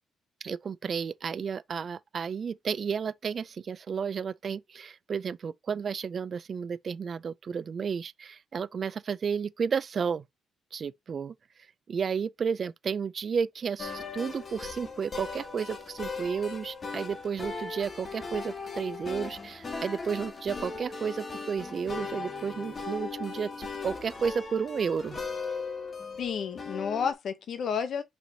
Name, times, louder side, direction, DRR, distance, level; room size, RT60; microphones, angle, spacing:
voice 1, 0.4-10.2 10.7-11.3 11.9-25.2, right 6 dB, 45° right, 0.3 m, -32 dB
sound 1, 13.8-27.1, left 4 dB, 35° left, 1.2 m, -38 dB
voice 2, 26.2-28.0, left 7 dB, 60° left, 0.8 m, -31 dB
5.7 x 3.2 x 2.7 m
cardioid pair, 90°, 0 cm